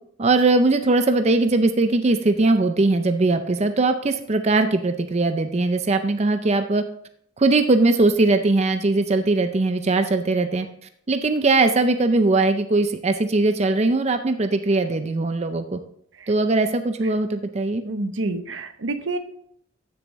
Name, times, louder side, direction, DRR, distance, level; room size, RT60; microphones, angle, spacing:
voice 1, 0.2-6.8 7.4-10.7 11.1-15.8 16.3-17.8, right 2 dB, 35° right, 8 dB, 0.5 m, -20 dB
voice 2, 17.9-19.2, right 2 dB, 80° right, 8 dB, 0.8 m, -27 dB
14.5 x 7.0 x 3.1 m, 0.70 s
head